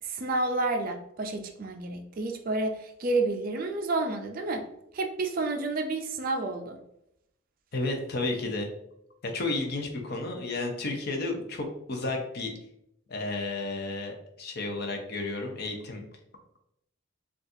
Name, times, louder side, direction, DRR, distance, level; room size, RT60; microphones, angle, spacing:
voice 1, 0.0-4.7 4.9-6.8, right 2 dB, 40° right, 4 dB, 0.4 m, -30 dB
voice 2, 7.7-8.7 9.2-12.5 13.1-16.1, left 2 dB, 50° left, 3 dB, 0.6 m, -32 dB
3.9 x 2.4 x 2.6 m, 0.78 s
head